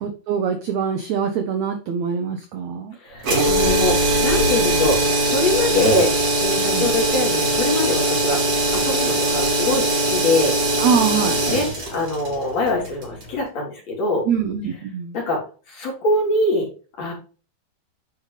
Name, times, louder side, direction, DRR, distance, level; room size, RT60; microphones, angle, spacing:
voice 1, 0.0-2.9 6.7-7.0 10.8-11.4 14.3-15.1, right 6 dB, 85° right, 6 dB, 1.6 m, -23 dB
voice 2, 3.0-10.5 11.5-14.3 15.1-15.4 15.7-16.7 17.0-17.1, left 2 dB, 45° left, -2 dB, 4.2 m, -23 dB
sound 1, 3.2-13.3, right 1 dB, 40° right, 3.5 m, -21 dB
9.9 x 5.0 x 3.3 m, 0.36 s
omnidirectional pair, 4.6 m